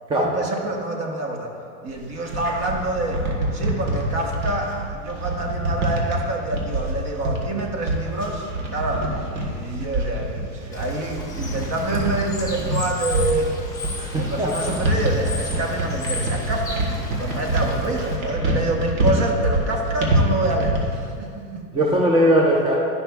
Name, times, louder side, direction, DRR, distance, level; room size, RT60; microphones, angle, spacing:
voice 1, 0.1-1.5 1.8-3.2 3.5-13.5 14.1-16.8 17.1-21.7, right 2 dB, 35° right, 2 dB, 1.1 m, -27 dB
sound 1, 1.9-21.0, right 1 dB, 70° right, 1.6 m, -25 dB
Bird / Water, 10.7-18.2, left 3 dB, 10° left, 1.1 m, -35 dB
voice 2, 14.0-14.5 21.7-22.8, equal, 10° right, -2 dB, 0.6 m, -19 dB
12.0 x 5.6 x 2.3 m, 2.3 s
supercardioid pair, 120°, 44 cm